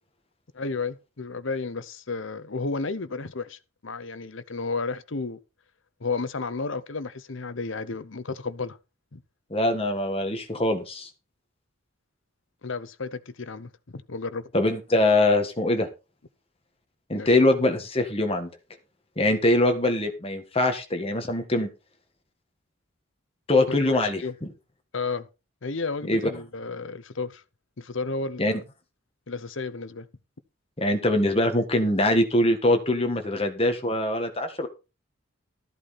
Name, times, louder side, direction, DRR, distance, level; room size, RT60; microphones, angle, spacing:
voice 1, 0.5-5.4 6.0-8.8 9.1-9.2 12.6-14.5 17.1-17.3 23.7-24.3 24.9-25.3 25.6-27.4 27.8-28.6 29.3-30.1, left 4 dB, 60° left, 0.8 m, -32 dB
voice 2, 9.5-11.1 14.5-15.9 17.1-18.5 19.2-21.7 23.5-24.2 26.1-26.2 28.4-28.6 30.8-34.7, left 1 dB, 25° left, 1.7 m, -23 dB
13.5 x 8.3 x 4.2 m
head